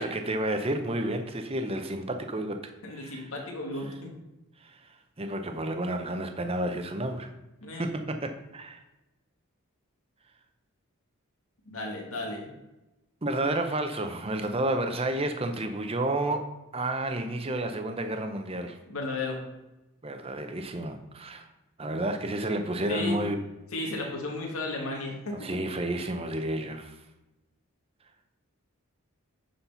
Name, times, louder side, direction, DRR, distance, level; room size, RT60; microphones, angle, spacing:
voice 1, 0.0-2.6 2.9-3.3 4.6-4.9 5.2-7.3 7.8-8.8 13.2-16.5 16.7-18.8 20.0-21.5 21.8-23.4 23.8-24.1 25.4-27.0, right 1 dB, 25° right, 6 dB, 0.7 m, -31 dB
voice 2, 2.8-4.1 7.6-7.9 11.7-12.5 18.9-19.4 22.9-23.2 23.7-25.5, left 2 dB, 75° left, 0 dB, 1.9 m, -34 dB
9.9 x 4.3 x 5.6 m, 0.99 s
head